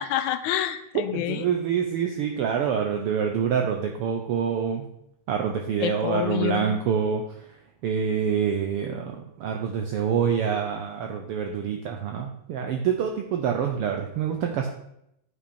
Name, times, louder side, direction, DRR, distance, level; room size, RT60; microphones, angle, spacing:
voice 1, 0.0-1.5 5.8-6.7, left 11 dB, 80° left, 11 dB, 1.9 m, -27 dB
voice 2, 1.1-4.9 5.3-7.5 7.8-14.7, right 7 dB, 80° right, 3 dB, 1.3 m, -26 dB
9.1 x 5.8 x 4.2 m, 0.78 s
omnidirectional pair, 3.4 m